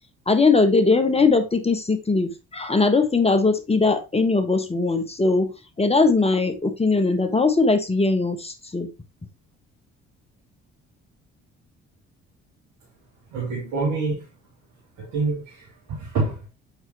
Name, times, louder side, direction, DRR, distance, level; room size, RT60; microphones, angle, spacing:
voice 1, 0.3-5.5 5.8-8.9, left 3 dB, 15° left, 1.3 m, -20 dB
voice 2, 13.3-14.3 15.0-16.5, right 3 dB, 60° right, 2.3 m, -27 dB
8.0 x 4.5 x 3.1 m
figure-of-eight pair, 45°, 36 cm